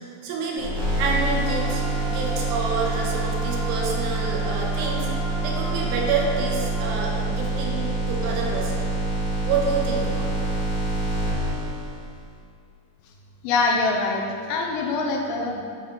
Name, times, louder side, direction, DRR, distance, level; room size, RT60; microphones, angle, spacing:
voice 1, 0.2-1.8 2.1-5.1 5.4-8.8 9.4-10.9, right 4 dB, 80° right, -2 dB, 2.8 m, -28 dB
sound 1, 0.6-12.2, right 2 dB, 55° right, 1.6 m, -26 dB
sound 2, 1.4-6.8, right 2 dB, 70° left, 2.0 m, -38 dB
voice 2, 13.4-14.2 14.5-15.6, left 3 dB, 85° left, 1 dB, 2.8 m, -23 dB
9.0 x 4.2 x 3.8 m, 2.3 s
omnidirectional pair, 5.1 m